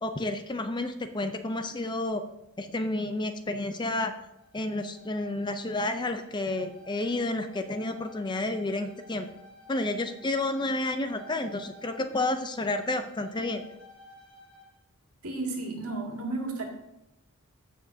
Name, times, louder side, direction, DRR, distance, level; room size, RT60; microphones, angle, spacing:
voice 1, 0.0-2.2 2.6-4.1 4.5-9.3 9.7-13.6, left 2 dB, 20° left, 8 dB, 0.5 m, -30 dB
Bowed string instrument, 4.3-14.8, left 1 dB, 85° left, 3.1 m, -53 dB
voice 2, 15.2-16.7, right 3 dB, 75° right, 0 dB, 2.1 m, -33 dB
15.5 x 6.1 x 2.7 m, 0.85 s
head